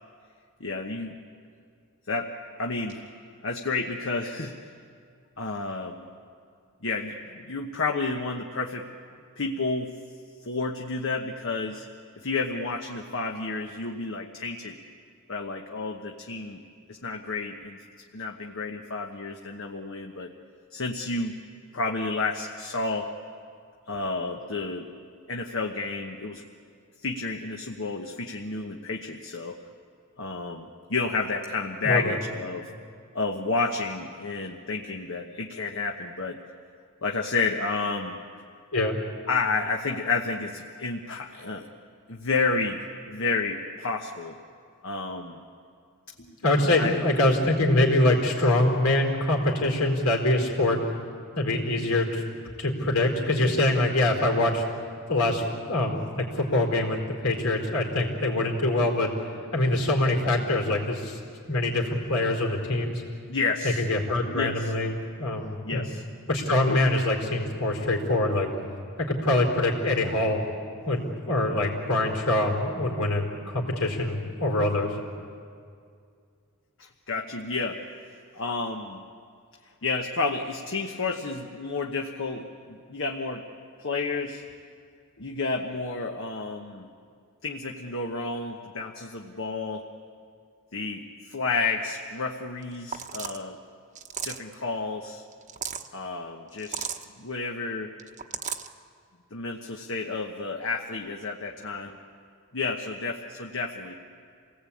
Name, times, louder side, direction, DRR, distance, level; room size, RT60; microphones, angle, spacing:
voice 1, 0.6-1.2 2.1-2.3 2.6-3.0 3.4-4.7 5.4-6.0 6.8-8.9 9.4-9.9 10.4-11.9 12.2-14.8 15.3-16.6 16.9-17.8 18.1-20.3 20.7-21.3 21.7-23.1 23.9-24.9 25.3-26.4 27.0-29.6 30.2-32.7 33.1-36.4 37.0-38.2 39.3-41.7 42.1-44.4 44.8-45.4 46.8-46.9 63.3-63.9 64.3-64.7 65.6-66.0 66.7-66.8 76.8-77.8 78.3-79.0 79.8-83.4 83.8-84.4 85.2-86.9 87.4-89.8 90.7-93.6 94.2-95.2 95.9-96.9 97.2-97.9 99.3-102.0 102.5-103.9, left 3 dB, 65° left, 2 dB, 1.2 m, -30 dB
voice 2, 31.8-32.2 38.7-39.0 46.2-50.8 51.3-52.2 52.6-54.6 55.1-59.1 59.5-61.2 61.5-63.0 63.6-65.9 66.3-68.5 69.0-70.4 70.8-75.0, left 1 dB, 90° left, 1 dB, 4.4 m, -24 dB
sound 1, 92.6-92.7 92.9-93.4 93.9-94.5 95.3-95.9 96.6-97.0 98.0-98.7, right 7 dB, 35° right, 1.0 m, -34 dB
28.0 x 18.5 x 8.6 m, 2.3 s
head